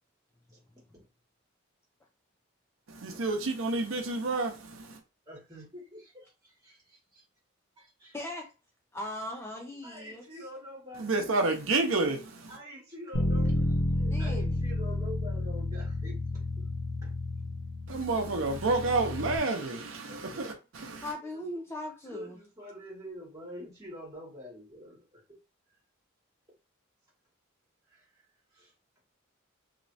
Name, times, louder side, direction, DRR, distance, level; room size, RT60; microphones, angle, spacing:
voice 1, 2.9-5.0 11.0-12.5 17.9-21.0, right 3 dB, 75° right, 0.7 m, -30 dB
voice 2, 5.3-7.2 7.8-8.2 9.8-11.3 12.5-16.4 17.0-17.1 20.1-21.4 22.1-25.2 27.9-28.2 28.5-28.7, equal, 20° right, 1.8 m, -46 dB
voice 3, 8.1-8.5 8.9-10.2 14.1-14.6 21.0-22.4, left 1 dB, 10° left, 0.5 m, -39 dB
Bass guitar, 13.1-19.4, left 1 dB, 80° left, 0.8 m, -31 dB
3.1 x 2.9 x 2.7 m
head